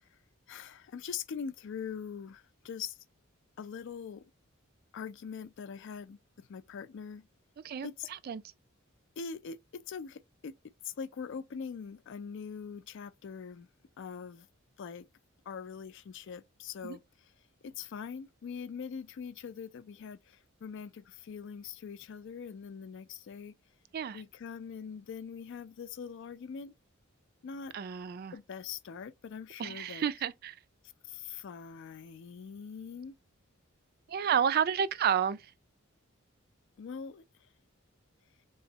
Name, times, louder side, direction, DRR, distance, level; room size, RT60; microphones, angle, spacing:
voice 1, 0.5-3.0 3.6-4.2 4.9-7.2 7.8-8.1 9.2-10.5 10.8-13.7 14.0-14.5 14.8-15.0 15.5-17.0 17.6-23.5 24.1-26.7 27.4-27.7 28.3-30.0 31.1-33.1 36.8-37.2, left 6 dB, 60° left, 0.4 m, -42 dB
voice 2, 7.6-8.4 16.8-17.0 23.9-24.2 27.7-28.3 29.6-30.6 34.1-35.5, right 8 dB, 50° right, 0.3 m, -31 dB
3.8 x 3.1 x 2.7 m
head